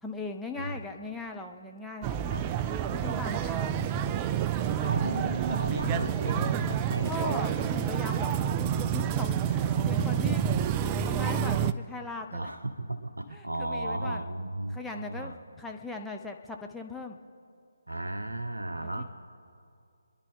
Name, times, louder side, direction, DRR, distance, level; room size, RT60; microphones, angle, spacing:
voice 1, 0.0-2.2 2.9-3.8 7.0-8.3 8.6-10.5 11.0-12.5 13.3-14.3 14.7-17.2 18.8-19.1, left 3 dB, ahead, 0 dB, 0.9 m, -39 dB
sound 1, 2.0-11.7, right 9 dB, 20° right, 0.4 m, -28 dB
voice 2, 4.8-7.5 9.4-10.0 12.3-15.3 17.9-19.1, right 2 dB, 75° right, 7 dB, 1.0 m, -34 dB
29.0 x 10.5 x 3.8 m, 2.4 s
figure-of-eight pair, 145°, 0 cm